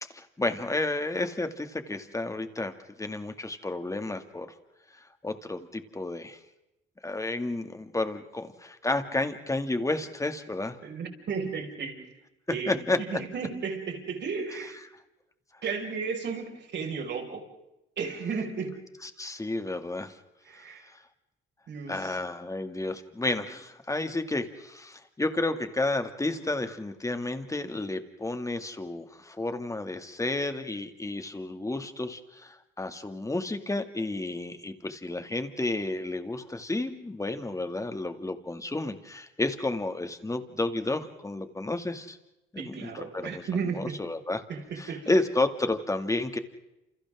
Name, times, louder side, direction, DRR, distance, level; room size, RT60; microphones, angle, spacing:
voice 1, 0.0-2.7 3.0-4.5 4.9-6.4 7.0-10.8 12.7-13.0 19.0-20.2 20.5-20.7 21.9-42.2 42.5-44.4 44.8-46.4, left 2 dB, 15° left, 8 dB, 2.4 m, -31 dB
voice 2, 10.8-12.1 12.5-14.8 15.6-17.5 18.0-18.9 20.4-20.9 21.7-22.2 42.6-44.0 44.5-45.1, right 5 dB, 60° right, 2 dB, 5.7 m, -34 dB
30.0 x 28.5 x 3.8 m, 0.93 s
cardioid pair, 90°, 20 cm